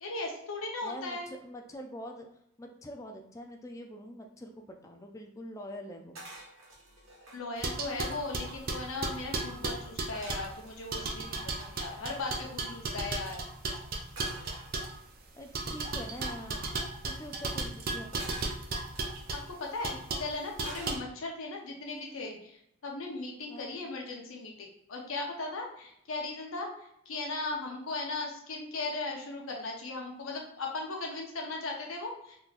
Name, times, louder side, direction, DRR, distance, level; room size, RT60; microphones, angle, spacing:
voice 1, 0.0-1.3 7.3-13.4 19.3-32.4, left 3 dB, 75° left, 0 dB, 0.7 m, -38 dB
voice 2, 0.8-2.3 2.6-6.2 15.3-16.7 17.0-18.4 23.5-23.8, equal, 15° left, 3 dB, 0.3 m, -44 dB
sound 1, 6.1-7.4 8.0-8.1 8.3-8.9 10.1-11.7 14.2-15.2 16.1-16.4 18.1-19.3 20.6-21.4 21.9-22.2, right 1 dB, 75° right, 1.2 m, -49 dB
sound 2, 7.6-10.5 10.9-15.0 15.5-19.4 19.8-20.3 20.6-21.0, right 3 dB, 45° right, 0.5 m, -35 dB
3.6 x 2.9 x 2.4 m, 0.74 s
head